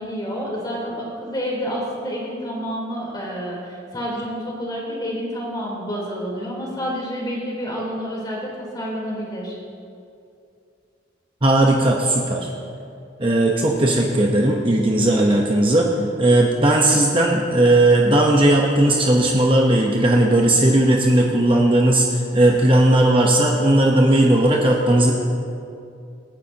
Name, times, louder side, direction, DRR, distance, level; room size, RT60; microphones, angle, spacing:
voice 1, 0.0-9.6, equal, 20° left, -4 dB, 3.7 m, -29 dB
voice 2, 11.4-12.5 13.2-25.1, right 1 dB, 30° right, -1 dB, 1.0 m, -17 dB
27.0 x 9.9 x 2.9 m, 2.5 s
head